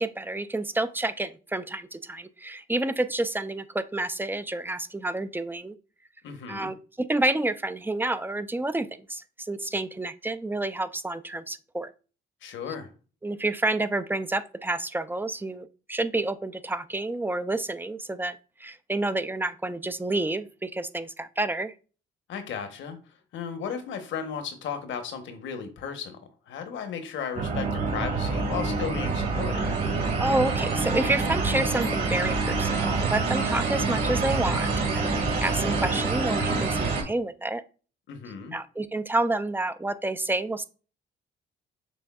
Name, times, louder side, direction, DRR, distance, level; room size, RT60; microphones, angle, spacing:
voice 1, 0.0-5.8 6.5-11.9 13.2-21.7 30.2-37.6 38.5-40.6, right 2 dB, 10° right, 12 dB, 0.3 m, -29 dB
voice 2, 6.2-6.7 12.4-12.9 22.3-26.2 26.5-29.6 38.1-38.5, left 7 dB, 75° left, 7 dB, 1.0 m, -35 dB
sound 1, 27.3-37.0, right 3 dB, 55° right, 2.1 m, -26 dB
6.2 x 3.3 x 2.3 m, 0.36 s
cardioid pair, 90°, 20 cm